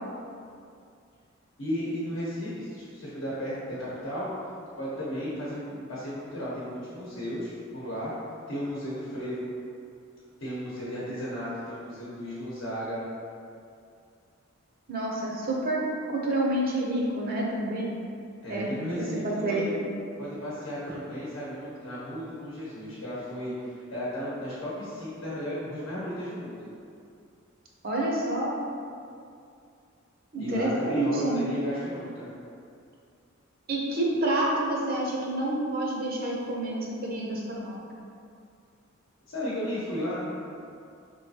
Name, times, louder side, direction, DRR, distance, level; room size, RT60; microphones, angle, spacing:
voice 1, 1.6-3.5 3.8-4.5 4.8-8.1 8.5-9.5 10.4-13.0 18.4-19.7 20.2-26.7 30.4-32.3 39.3-40.2, equal, 70° left, -8 dB, 0.9 m, -34 dB
voice 2, 14.9-15.8 16.1-17.9 18.5-18.9 19.2-19.8 27.8-28.5 30.3-31.5 33.7-37.8, right 1 dB, 45° right, -3 dB, 0.6 m, -28 dB
3.8 x 3.0 x 2.8 m, 2.4 s
head